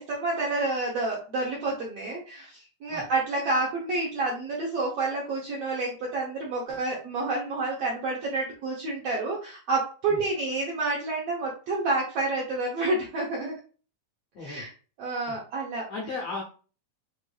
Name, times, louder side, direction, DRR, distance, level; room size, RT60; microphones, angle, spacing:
voice 1, 0.0-13.5 14.4-14.7 15.0-15.9, right 3 dB, 75° right, -3 dB, 1.4 m, -29 dB
voice 2, 15.9-16.4, left 3 dB, 75° left, -2 dB, 1.5 m, -35 dB
6.5 x 2.6 x 2.3 m, 0.38 s
omnidirectional pair, 3.9 m